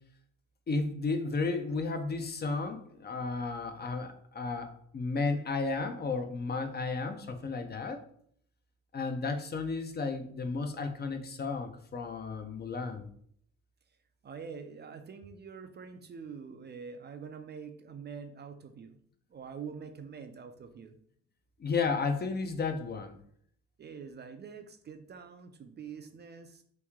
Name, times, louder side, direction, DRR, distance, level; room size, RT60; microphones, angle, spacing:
voice 1, 0.7-8.0 8.9-13.1 21.6-23.2, left 4 dB, 35° left, 6 dB, 0.5 m, -33 dB
voice 2, 14.2-19.0 19.3-21.0 23.8-26.6, right 6 dB, 35° right, 7 dB, 0.4 m, -45 dB
3.0 x 2.7 x 3.5 m, 0.63 s
cardioid pair, 90°, 30 cm